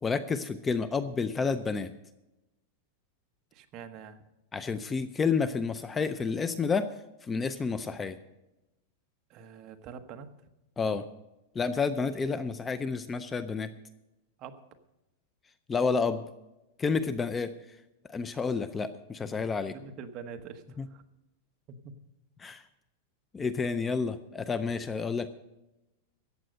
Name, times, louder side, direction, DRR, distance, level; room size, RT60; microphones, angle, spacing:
voice 1, 0.0-1.9 4.5-6.9 7.2-8.2 10.8-11.0 11.5-13.7 15.7-16.2 16.8-17.5 18.1-19.7 20.8-20.9 22.4-22.6 23.3-25.3, left 5 dB, 15° left, 12 dB, 0.5 m, -30 dB
voice 2, 3.5-4.2 9.3-10.3 14.4-14.7 19.7-21.0 21.7-21.9, right 6 dB, 30° right, 6 dB, 1.1 m, -45 dB
14.0 x 9.1 x 6.5 m, 0.96 s
supercardioid pair, 160°, 0 cm